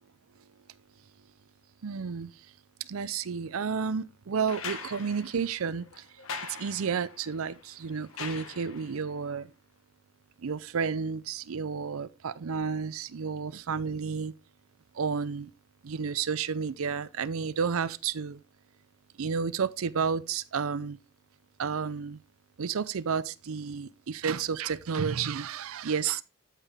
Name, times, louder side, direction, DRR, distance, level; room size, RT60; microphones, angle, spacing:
voice 1, 1.8-2.3 2.8-6.1 6.5-9.5 10.4-14.3 14.9-15.5 15.8-18.4 19.2-21.0 21.6-22.2 22.6-26.2, right 6 dB, 80° right, 0.5 m, -31 dB
sound 1, 4.5-9.1 10.6-10.7, left 5 dB, 80° left, 1.6 m, -42 dB
12.5 x 5.7 x 3.5 m
head